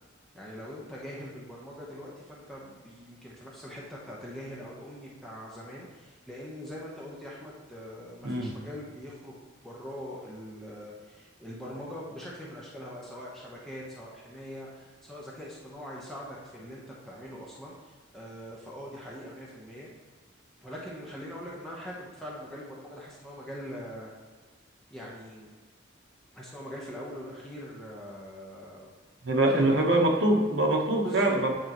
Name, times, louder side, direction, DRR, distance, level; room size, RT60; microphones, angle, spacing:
voice 1, 0.3-9.4 9.6-19.9 20.6-24.1 24.9-25.5 26.3-28.9 29.5-29.8 31.0-31.3, equal, ahead, -6 dB, 0.9 m, -42 dB
voice 2, 8.2-8.5 29.2-31.5, right 1 dB, 70° right, 1 dB, 1.1 m, -24 dB
9.1 x 4.6 x 3.0 m, 1.5 s
head